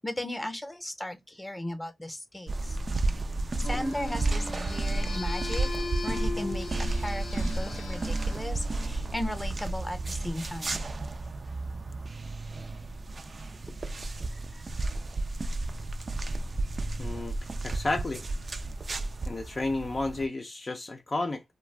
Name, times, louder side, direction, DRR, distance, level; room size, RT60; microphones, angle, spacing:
voice 1, 0.0-2.8 3.6-5.7 6.0-10.8 14.3-14.6, left 1 dB, 10° left, 0.7 m, -36 dB
sound 1, 2.5-20.3, right 2 dB, 45° right, 0.4 m, -32 dB
sound 2, 3.6-9.7, left 3 dB, 90° left, 0.9 m, -39 dB
voice 2, 17.0-17.3 17.6-18.2 19.3-21.4, left 2 dB, 40° left, 0.5 m, -31 dB
2.4 x 2.2 x 3.2 m
cardioid pair, 70°, 0 cm